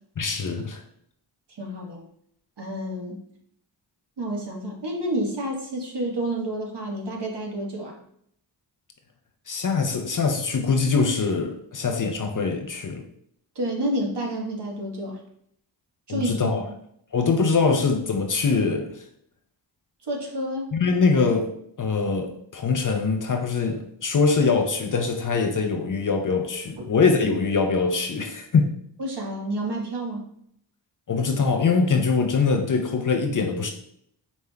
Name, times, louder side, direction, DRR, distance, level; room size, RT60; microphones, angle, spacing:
voice 1, 0.2-0.8 9.5-13.1 16.1-16.7 17.1-19.0 20.7-21.5 21.8-28.7 31.1-33.7, left 4 dB, 40° left, 4 dB, 0.6 m, -23 dB
voice 2, 1.6-2.0 2.6-3.2 4.2-8.0 13.5-15.2 16.1-16.5 20.0-20.7 29.0-30.2, right 1 dB, 55° right, 0 dB, 1.3 m, -29 dB
5.3 x 3.1 x 2.2 m, 0.69 s
cardioid pair, 40°, 48 cm